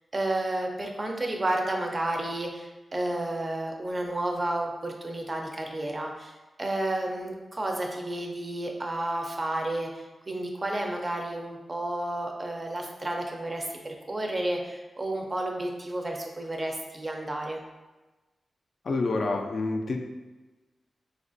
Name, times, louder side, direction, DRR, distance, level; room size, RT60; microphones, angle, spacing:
voice 1, 0.1-17.6, right 1 dB, 25° right, 1 dB, 0.4 m, -31 dB
voice 2, 18.9-20.0, left 3 dB, 55° left, 3 dB, 0.3 m, -27 dB
4.3 x 2.3 x 2.5 m, 1.1 s
wide cardioid pair, 145°, 0 cm